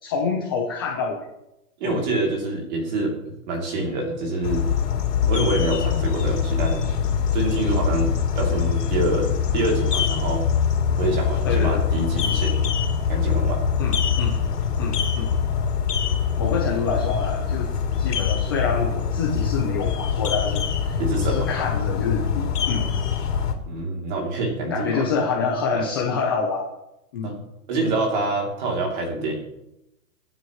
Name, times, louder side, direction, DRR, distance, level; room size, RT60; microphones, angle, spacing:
voice 1, 0.0-1.2 1.8-1.9 8.4-8.6 11.4-11.9 13.8-14.4 14.8-15.3 16.4-17.7 18.0-22.9 24.7-26.7 27.1-27.3, left 5 dB, 15° left, -1 dB, 0.8 m, -27 dB
voice 2, 1.8-3.1 3.5-4.6 5.3-6.9 7.3-10.4 11.0-12.7 13.1-13.6 21.0-21.5 23.7-25.1 25.7-25.9 27.2-27.4 27.7-29.4, right 2 dB, 30° right, 0 dB, 3.0 m, -26 dB
sound 1, 4.4-23.5, left 7 dB, 80° left, 3.3 m, -23 dB
24.5 x 9.5 x 3.1 m, 0.87 s
hypercardioid pair, 175°, 46 cm